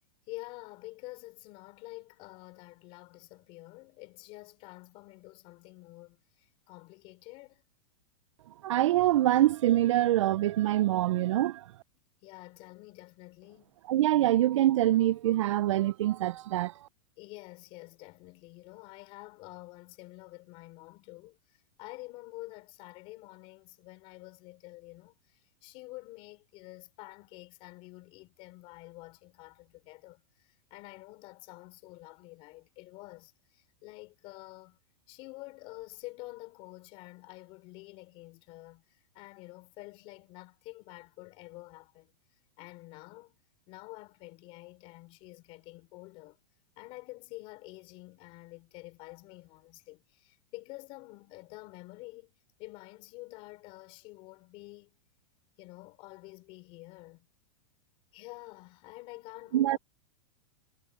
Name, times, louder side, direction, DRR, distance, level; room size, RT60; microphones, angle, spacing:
voice 1, 0.3-7.6 12.2-13.8 17.2-34.8 35.1-42.1 42.6-43.4 43.7-46.4 46.8-55.0 55.6-57.3 58.1-59.8, left 22 dB, 30° left, 5.1 m, -48 dB
voice 2, 8.6-11.7 13.9-16.7 59.5-59.8, right 14 dB, 60° right, 0.5 m, -25 dB
supercardioid pair, 175°, 18 cm